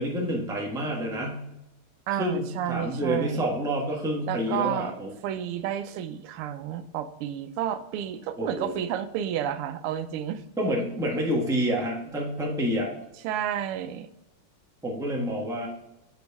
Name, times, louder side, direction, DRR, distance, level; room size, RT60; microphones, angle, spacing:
voice 1, 0.0-1.4 2.2-5.1 8.4-8.8 10.6-12.9 14.8-15.7, equal, ahead, -2 dB, 0.9 m, -28 dB
voice 2, 2.1-3.4 4.3-5.0 5.2-10.4 13.2-14.1, right 10 dB, 90° right, 11 dB, 1.5 m, -31 dB
7.8 x 5.0 x 3.5 m, 0.89 s
omnidirectional pair, 2.4 m